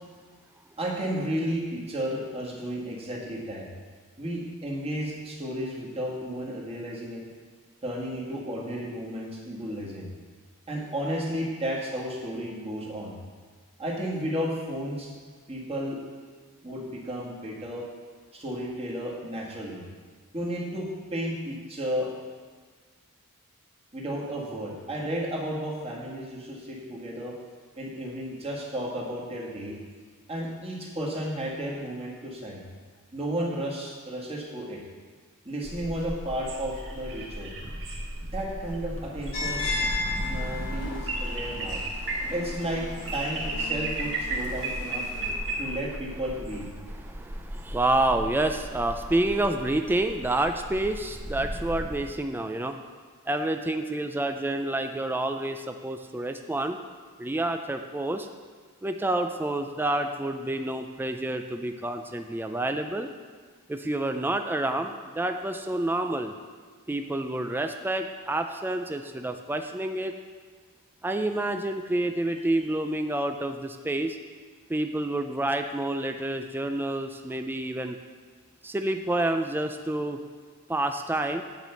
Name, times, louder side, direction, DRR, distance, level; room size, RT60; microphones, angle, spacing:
voice 1, 0.8-3.7 4.2-7.2 7.8-10.1 10.7-13.2 13.8-15.1 15.5-16.0 16.6-17.9 18.3-19.8 20.3-22.1 23.9-27.4 27.8-29.8 30.3-32.6 33.1-34.8 35.5-37.5 38.2-39.7 40.3-41.8 42.3-42.9 43.1-45.0 45.6-46.7 72.6-72.7, equal, 25° right, -3 dB, 1.8 m, -33 dB
sound 1, 35.6-52.0, right 1 dB, 60° right, 1.5 m, -35 dB
sound 2, 39.3-45.3, left 3 dB, 70° left, 1.7 m, -35 dB
voice 2, 39.9-40.6 42.0-42.3 45.2-45.6 46.9-52.8 53.3-56.8 57.2-58.3 58.8-63.1 63.7-66.3 66.9-70.1 71.0-74.2 74.7-78.0 78.6-80.2 80.7-81.4, right 1 dB, 10° right, 6 dB, 0.4 m, -29 dB
9.0 x 5.1 x 6.9 m, 1.5 s
head